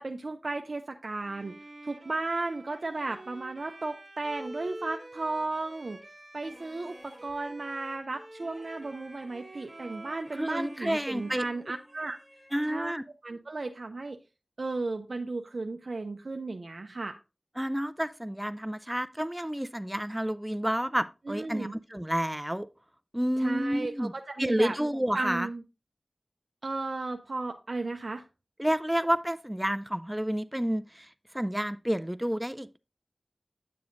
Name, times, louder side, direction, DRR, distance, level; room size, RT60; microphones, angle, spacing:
voice 1, 0.0-1.6 1.8-6.0 6.3-12.2 12.7-12.9 13.2-14.2 14.6-17.2 21.3-21.7 23.4-24.8 25.1-25.6 26.6-28.2, right 3 dB, 70° right, 0.5 m, -34 dB
Bowed string instrument, 1.2-12.2, right 1 dB, 50° right, 1.3 m, -47 dB
sound 1, 6.4-7.5 8.4-13.0, equal, 15° left, 2.0 m, -57 dB
voice 2, 10.4-11.4 12.5-13.0 17.6-22.7 23.1-24.1 24.4-25.5 28.6-31.1 31.3-32.8, equal, 10° right, 0.3 m, -30 dB
9.2 x 6.8 x 2.5 m
wide cardioid pair, 45°, 0 cm